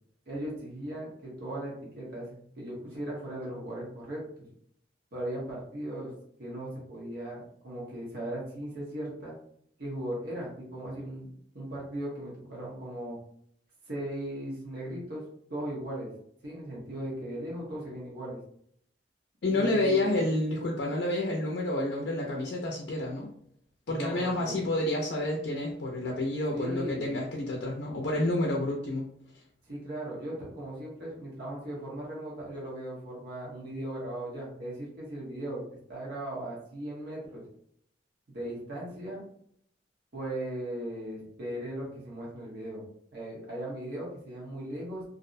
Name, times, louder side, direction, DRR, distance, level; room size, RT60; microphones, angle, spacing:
voice 1, 0.3-4.2 5.1-6.1 6.4-9.3 9.8-13.2 13.9-15.2 15.5-16.1 16.4-18.4 19.5-20.2 23.9-24.7 26.5-27.1 29.7-37.4 38.3-39.2 40.1-42.8 43.1-45.0, right 1 dB, 65° right, -5 dB, 1.0 m, -38 dB
voice 2, 19.4-23.3 23.9-29.1, left 1 dB, 65° left, -2 dB, 0.4 m, -29 dB
2.5 x 2.0 x 2.5 m, 0.66 s
head